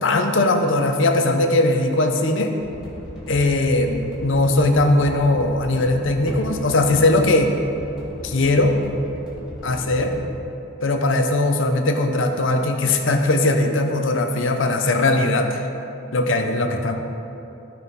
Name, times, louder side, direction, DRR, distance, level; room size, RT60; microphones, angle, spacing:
voice 1, 0.0-2.5 3.3-7.5 8.2-8.8 9.6-10.1 10.8-15.6 16.1-17.0, left 2 dB, 65° left, 4 dB, 0.8 m, -19 dB
sound 1, 2.6-10.3, equal, 5° right, 1.7 m, -36 dB
13.0 x 5.6 x 4.2 m, 2.8 s
head